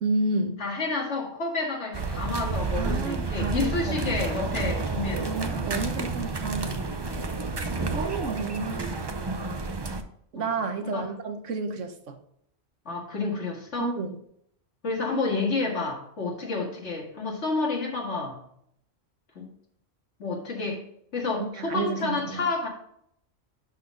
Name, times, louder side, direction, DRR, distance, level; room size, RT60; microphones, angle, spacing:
voice 1, 0.0-0.6 2.8-4.3 5.2-6.8 7.8-9.0 10.3-12.2 13.8-14.2 21.4-22.5, right 3 dB, 75° right, 7 dB, 1.2 m, -31 dB
voice 2, 0.6-5.5 7.0-7.3 7.8-7.9 10.4-10.5 10.8-11.1 12.9-13.9 14.8-18.4 19.4-19.5 20.2-20.8 21.1-22.7, left 3 dB, 65° left, -1 dB, 2.2 m, -30 dB
sound 1, 1.9-10.0, right 3 dB, 30° right, 0.4 m, -30 dB
11.5 x 4.2 x 3.8 m, 0.71 s
omnidirectional pair, 1.3 m